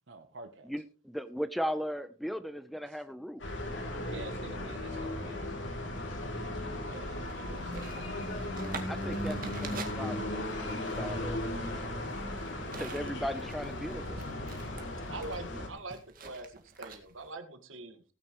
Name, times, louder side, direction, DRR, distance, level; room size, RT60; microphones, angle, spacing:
voice 1, 0.1-0.7 2.9-3.0 4.1-8.0, right 2 dB, 65° right, 6 dB, 1.0 m, -49 dB
voice 2, 0.7-3.4 8.9-11.4 12.8-14.3, equal, ahead, 12 dB, 0.6 m, -37 dB
sound 1, 3.4-15.7, left 1 dB, 70° left, 3.2 m, -36 dB
sound 2, 7.0-17.3, right 4 dB, 45° right, 1.9 m, -48 dB
voice 3, 15.1-18.0, right 2 dB, 90° right, 9 dB, 1.7 m, -43 dB
17.5 x 9.4 x 3.1 m, 0.34 s
head